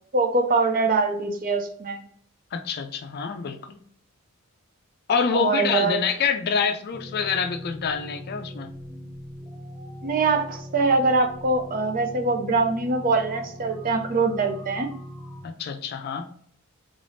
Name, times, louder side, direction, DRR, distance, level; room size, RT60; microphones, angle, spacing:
voice 1, 0.1-2.0 5.3-5.9 10.0-14.9, right 3 dB, 40° right, 6 dB, 0.5 m, -23 dB
voice 2, 2.5-3.8 5.1-8.7 15.4-16.3, left 6 dB, 45° left, 7 dB, 0.4 m, -26 dB
sound 1, 6.9-15.4, equal, 5° left, 0.8 m, -40 dB
3.6 x 3.4 x 2.6 m, 0.62 s
head